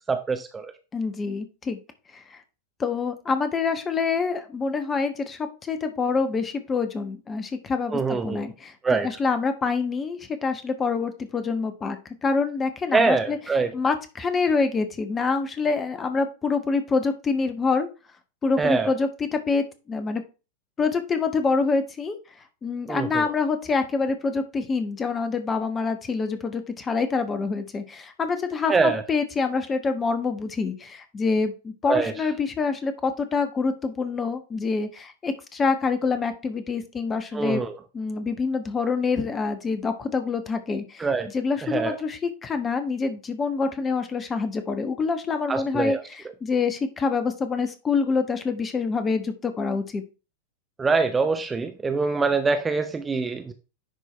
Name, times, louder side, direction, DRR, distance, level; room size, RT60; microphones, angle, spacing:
voice 1, 0.1-0.7 7.9-8.4 8.8-9.1 12.9-13.7 18.6-18.9 22.9-23.3 28.7-29.0 31.9-32.1 37.3-37.7 41.0-41.3 41.6-42.0 45.5-46.0 50.8-53.5, right 4 dB, 15° right, 0.7 m, -24 dB
voice 2, 0.9-1.8 2.1-2.4 2.8-8.7 9.0-12.0 12.2-13.4 13.7-17.9 18.4-20.2 20.8-22.2 22.6-37.6 37.9-41.1 41.3-50.0, left 4 dB, 20° left, 1.1 m, -26 dB
10.0 x 4.6 x 3.4 m
figure-of-eight pair, 90°, 0 cm